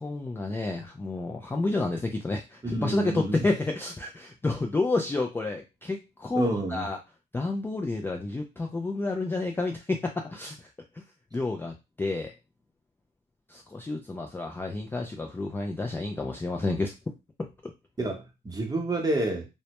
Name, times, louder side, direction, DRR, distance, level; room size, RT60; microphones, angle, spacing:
voice 1, 0.0-7.0 7.3-10.7 10.9-11.0 11.3-12.3 13.5-16.9 17.4-17.5, left 2 dB, 10° left, 0.3 m, -30 dB
voice 2, 2.6-3.5 6.3-6.9 18.0-19.4, right 2 dB, 20° right, 0.8 m, -29 dB
2.1 x 2.0 x 2.8 m
cardioid pair, 90°, 20 cm